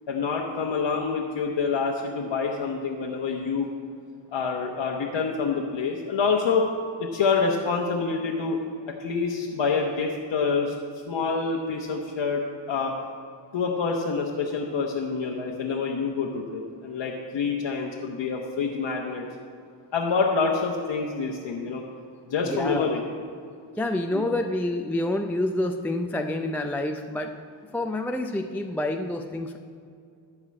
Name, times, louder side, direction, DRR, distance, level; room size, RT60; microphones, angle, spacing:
voice 1, 0.1-3.7 4.3-6.7 7.0-8.6 9.0-10.7 11.1-12.4 12.7-12.9 13.5-19.3 19.9-21.8 22.3-23.0 24.1-24.2, left 5 dB, 65° left, -1 dB, 1.1 m, -27 dB
voice 2, 22.4-23.0 23.8-27.3 27.7-29.6, left 1 dB, 5° left, 4 dB, 0.4 m, -28 dB
12.5 x 4.9 x 8.4 m, 2.4 s
cardioid pair, 105°, 48 cm